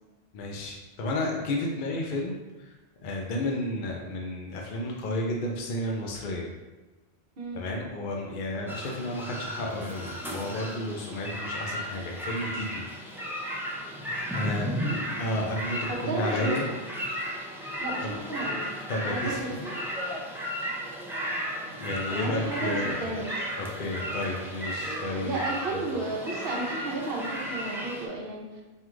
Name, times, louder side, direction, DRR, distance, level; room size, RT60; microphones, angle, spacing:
voice 1, 0.3-2.7 3.0-6.5 7.5-12.8 14.3-14.7 15.2-16.7 18.0-18.1 18.9-19.6 21.8-23.1 23.6-25.4 25.7-25.9, left 1 dB, 55° left, 0 dB, 0.7 m, -32 dB
sound 1, 8.7-28.1, equal, 5° right, 0.4 m, -34 dB
voice 2, 14.6-15.0 15.9-16.8 17.8-18.6 19.0-19.4 19.6-19.7 22.1-23.5 25.2-28.6, right 2 dB, 65° right, -2 dB, 1.1 m, -33 dB
5.5 x 2.4 x 3.1 m, 1.2 s
omnidirectional pair, 1.1 m